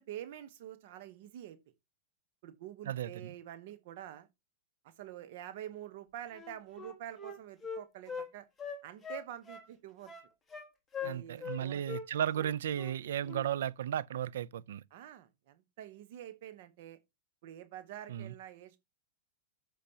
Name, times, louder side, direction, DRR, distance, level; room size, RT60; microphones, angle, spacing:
voice 1, 0.0-1.6 2.4-4.3 4.8-8.5 8.8-10.1 11.0-12.0 14.9-17.0 17.4-18.8, right 11 dB, 50° right, 1.0 m, -47 dB
voice 2, 2.9-3.3 11.0-14.8 18.1-18.3, right 10 dB, 75° right, 0.5 m, -35 dB
Wind instrument woodwind instrument, 6.3-8.3 8.6-9.7 10.0-10.7 10.9-11.6 11.8-12.0 12.3-13.0 13.2-13.4, left 6 dB, 10° left, 1.4 m, -42 dB
14.0 x 5.1 x 2.8 m
supercardioid pair, 165°, 0 cm